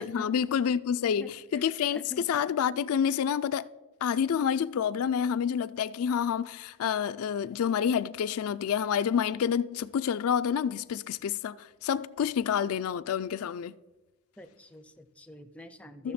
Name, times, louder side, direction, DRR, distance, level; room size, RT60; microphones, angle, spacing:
voice 1, 0.0-2.0 2.3-3.7 4.0-13.7 16.0-16.1, left 8 dB, 80° left, 0.4 m, -28 dB
voice 2, 1.2-2.2 14.4-16.1, left 2 dB, 5° left, 0.5 m, -47 dB
14.0 x 6.4 x 4.2 m
head